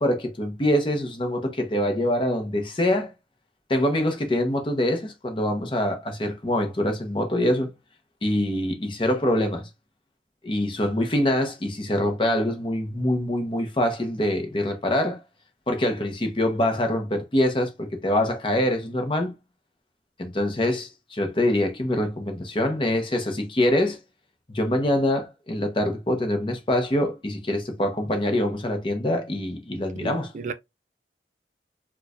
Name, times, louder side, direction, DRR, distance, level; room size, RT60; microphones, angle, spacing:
voice 1, 0.0-3.1 3.7-7.7 8.2-9.7 10.4-15.2 15.7-19.3 20.2-24.0 24.5-30.3, left 1 dB, 30° left, 0.7 m, -24 dB
voice 2, 30.0-30.5, right 4 dB, 40° right, 0.3 m, -33 dB
4.5 x 2.3 x 2.4 m
head